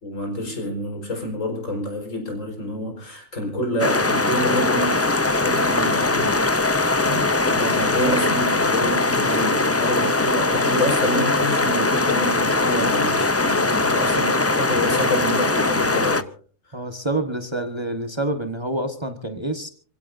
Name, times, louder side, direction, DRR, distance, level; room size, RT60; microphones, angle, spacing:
voice 1, 0.0-6.8 7.5-16.3 16.7-16.9, equal, 80° left, 5.3 m, -28 dB
sound 1, 3.8-16.2, left 2 dB, 25° left, 0.3 m, -21 dB
voice 2, 16.7-19.7, right 2 dB, 20° right, 1.4 m, -27 dB
27.0 x 16.5 x 2.7 m
omnidirectional pair, 1.3 m